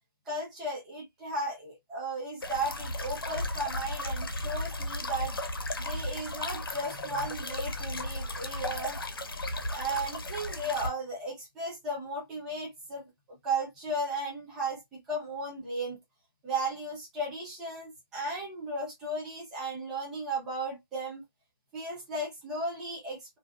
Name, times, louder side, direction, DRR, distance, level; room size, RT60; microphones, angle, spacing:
voice 1, 0.3-5.4 5.8-9.1 9.7-13.1 13.4-16.0 16.4-21.2 21.7-23.4, right 2 dB, 5° right, 0.5 m, -35 dB
sound 1, 2.4-10.9, left 1 dB, 80° left, 0.7 m, -35 dB
2.6 x 2.0 x 2.3 m
hypercardioid pair, 170°, 12 cm